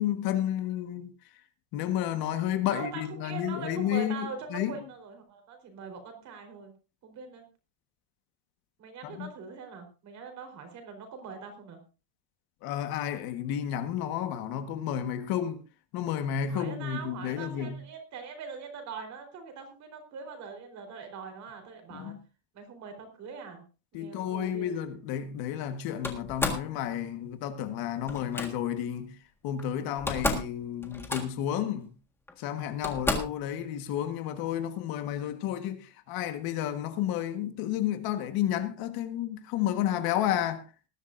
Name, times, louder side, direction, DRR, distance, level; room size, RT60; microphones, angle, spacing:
voice 1, 0.0-1.4 1.7-4.8 9.0-9.3 12.6-15.6 15.9-17.8 21.9-22.2 23.9-29.2 29.4-31.9 32.4-40.7, left 10 dB, 50° left, 1.5 m, -31 dB
voice 2, 2.7-6.7 7.0-7.4 8.8-11.8 16.5-22.2 22.5-23.6 23.9-24.8, right 5 dB, 35° right, 4.2 m, -42 dB
Slam, 26.0-26.7 28.1-28.5 29.6-29.7 29.9-30.5 30.8-31.5 32.3-32.4 32.8-33.4, left 2 dB, 5° left, 1.6 m, -31 dB
19.5 x 12.0 x 2.6 m
cardioid pair, 175°, 47 cm